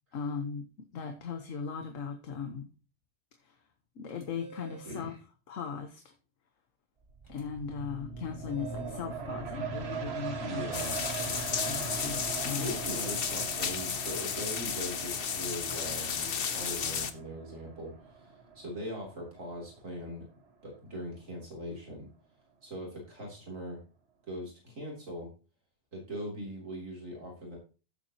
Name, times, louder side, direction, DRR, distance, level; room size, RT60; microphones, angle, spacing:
voice 1, 0.1-0.7 0.9-2.7 3.4-3.6 3.9-5.1 5.5-6.1 7.3-10.8 11.2-12.7, left 6 dB, 75° left, 6 dB, 1.4 m, -38 dB
sound 1, 4.1-5.0 7.2-7.4 8.5-9.1, right 4 dB, 20° left, 3.5 m, -50 dB
voice 2, 4.8-5.2 10.4-10.9 12.5-20.3 20.6-22.1 22.6-23.8 24.3-25.3 25.9-27.6, equal, 75° right, -2 dB, 3.6 m, -41 dB
sound 2, 7.0-20.3 20.7-20.8, right 5 dB, 55° right, 1.4 m, -41 dB
sound 3, 10.7-17.1, left 7 dB, 50° left, 0.9 m, -33 dB
14.5 x 7.3 x 2.9 m, 0.34 s
omnidirectional pair, 1.4 m